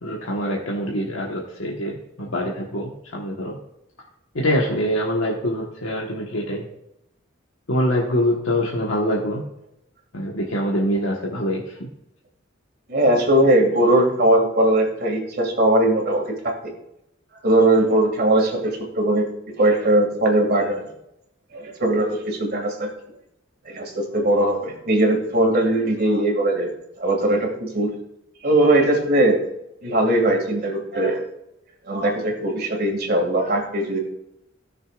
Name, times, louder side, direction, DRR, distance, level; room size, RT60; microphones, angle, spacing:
voice 1, 0.0-3.6 4.3-6.7 7.7-9.4 10.1-11.9, equal, 90° left, -2 dB, 1.3 m, -24 dB
voice 2, 12.9-16.5 17.4-19.3 19.6-20.9 21.5-22.9 23.7-26.7 27.0-27.9 28.4-29.4 29.8-31.2 31.9-34.0, right 1 dB, 55° right, 2 dB, 2.2 m, -20 dB
17.0 x 6.6 x 2.5 m, 0.84 s
head